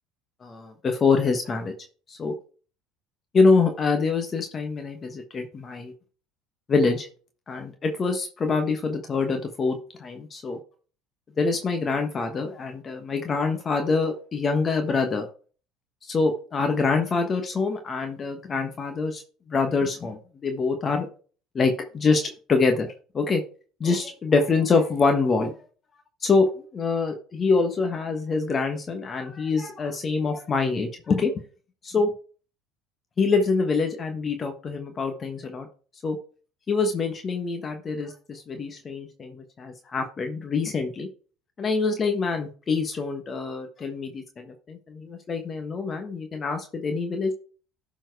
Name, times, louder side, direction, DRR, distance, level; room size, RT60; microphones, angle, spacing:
voice 1, 0.4-1.7 2.1-2.3 3.3-5.9 6.7-7.1 7.5-10.6 11.4-15.3 16.0-19.2 19.5-21.1 21.5-22.9 23.1-23.4 23.8-25.5 26.2-26.5 26.7-31.3 31.8-32.1 33.2-35.7 36.0-36.2 36.7-41.1 41.6-47.3, left 4 dB, 35° left, 5 dB, 1.3 m, -25 dB
12.0 x 4.5 x 4.7 m, 0.40 s
supercardioid pair, 85°, 0 cm